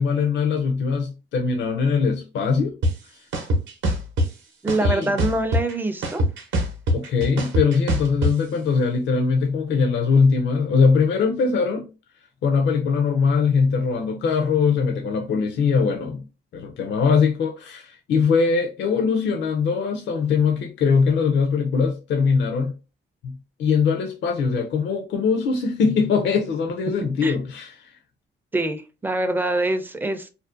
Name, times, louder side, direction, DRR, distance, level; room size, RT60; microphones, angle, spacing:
voice 1, 0.0-2.8 4.8-5.2 6.9-11.9 12.4-16.2 16.5-22.7 23.2-27.9, left 5 dB, 65° left, 0.5 m, -21 dB
sound 1, 2.8-2.9 3.3-4.3 4.7-5.7 6.0-8.3, equal, 75° right, 0.7 m, -22 dB
voice 2, 4.6-6.2 27.2-27.4 28.5-30.3, right 2 dB, 10° right, 0.4 m, -24 dB
2.5 x 2.1 x 2.4 m
cardioid pair, 90°, 20 cm